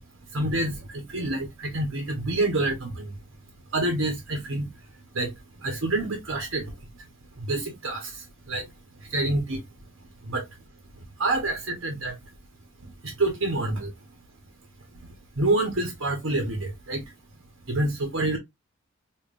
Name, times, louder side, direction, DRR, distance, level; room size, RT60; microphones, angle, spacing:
voice 1, 0.3-3.1 3.7-4.7 5.1-5.3 5.6-6.7 7.4-8.1 8.5-8.6 9.1-9.6 10.3-10.4 11.2-12.1 13.2-13.9 15.4-17.0 17.7-18.4, right 2 dB, 75° right, 1.0 m, -27 dB
5.1 x 2.5 x 2.4 m
head